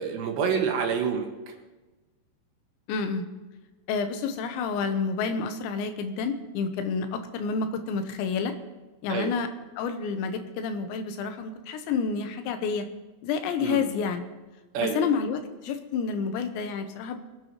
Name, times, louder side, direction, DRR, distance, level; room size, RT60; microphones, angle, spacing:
voice 1, 0.0-1.6 9.1-9.3 13.6-13.8 14.7-15.0, right 6 dB, 80° right, 3 dB, 3.7 m, -28 dB
voice 2, 2.9-3.2 3.9-8.5 9.0-9.5 9.8-12.9 13.2-14.3 14.8-17.2, left 5 dB, 90° left, 7 dB, 3.3 m, -29 dB
23.0 x 10.0 x 3.1 m, 1.2 s
omnidirectional pair, 5.0 m